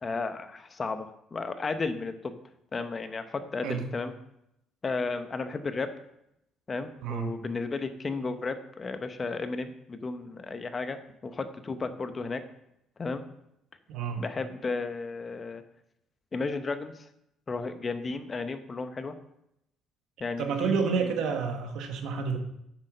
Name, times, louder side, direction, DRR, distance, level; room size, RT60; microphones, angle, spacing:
voice 1, 0.0-2.4 2.7-4.1 4.8-5.9 6.7-11.0 11.2-12.4 13.0-13.2 14.2-15.6 16.3-17.0 17.5-19.1 20.2-21.1, left 4 dB, 30° left, 9 dB, 0.8 m, -33 dB
voice 2, 7.0-7.3 13.9-14.2 20.4-22.4, right 5 dB, 75° right, 5 dB, 1.3 m, -29 dB
8.0 x 6.7 x 5.1 m, 0.80 s
cardioid pair, 115°, 0 cm